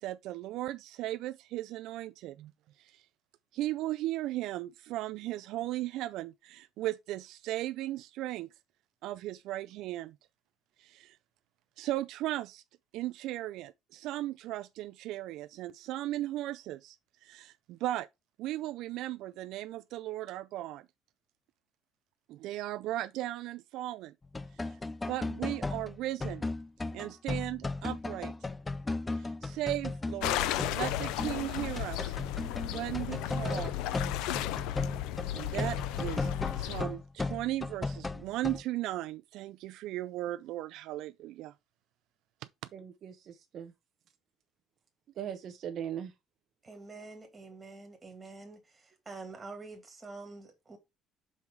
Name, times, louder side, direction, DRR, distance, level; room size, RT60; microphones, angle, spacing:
voice 1, 0.0-2.4 2.8-3.1 3.5-8.5 9.0-10.1 10.8-11.2 11.8-12.6 12.9-17.0 17.2-18.1 18.4-20.8 22.3-24.1 24.6-24.8 25.1-26.5 26.9-28.3 29.1-30.4 30.7-32.1 32.6-33.7 35.3-36.3 36.6-41.5, right 15 dB, 70° right, 0.3 m, -36 dB
sound 1, 24.2-38.6, left 3 dB, 15° left, 0.4 m, -36 dB
sound 2, 30.2-36.8, left 13 dB, 85° left, 0.4 m, -34 dB
voice 2, 42.7-43.7 45.1-46.1, right 9 dB, 50° right, 0.8 m, -40 dB
voice 3, 46.6-48.6 49.1-50.8, right 3 dB, 15° right, 2.2 m, -46 dB
5.6 x 4.6 x 4.5 m
cardioid pair, 135°, 0 cm